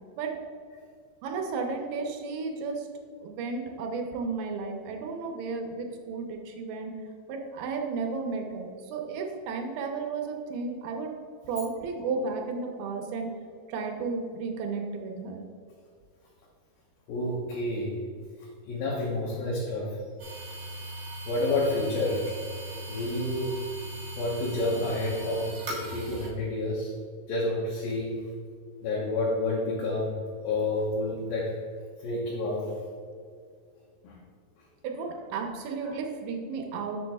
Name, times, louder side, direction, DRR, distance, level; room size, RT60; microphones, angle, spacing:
voice 1, 1.2-2.9 3.2-6.9 7.3-11.1 11.4-13.3 13.7-15.4 34.8-37.0, right 4 dB, 80° right, 2 dB, 2.7 m, -33 dB
voice 2, 17.1-18.0 18.7-20.0 21.3-22.3 22.9-23.6 24.2-26.9 27.3-28.2 28.8-30.2 30.4-31.6 32.0-32.8 34.0-34.2 35.8-35.9, left 2 dB, 70° left, -5 dB, 2.8 m, -29 dB
sound 1, 20.2-26.3, right 1 dB, 60° right, 1.4 m, -39 dB
12.0 x 6.2 x 2.3 m, 2.2 s
omnidirectional pair, 4.6 m